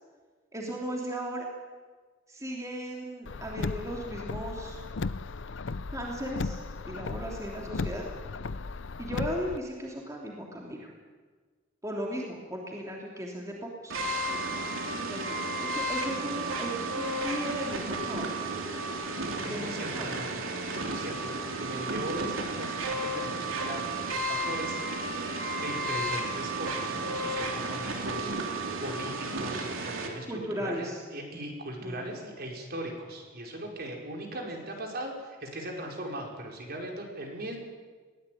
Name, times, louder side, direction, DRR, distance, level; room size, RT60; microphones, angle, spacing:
voice 1, 0.5-1.5 2.3-4.8 5.9-6.6 6.8-8.1 9.0-10.9 11.8-14.0 15.0-18.4 19.4-20.1 20.5-20.7 30.3-31.0 31.8-32.0, equal, 15° right, -1 dB, 3.2 m, -36 dB
Car, 3.3-9.6, left 3 dB, 65° left, 0.6 m, -36 dB
sound 1, 13.9-30.1, right 2 dB, 80° right, 3.2 m, -33 dB
voice 2, 19.4-20.3 20.7-23.8 24.1-25.2 25.5-28.3 28.8-37.6, right 1 dB, 50° right, 1 dB, 5.0 m, -39 dB
22.0 x 17.5 x 9.4 m, 1.5 s
head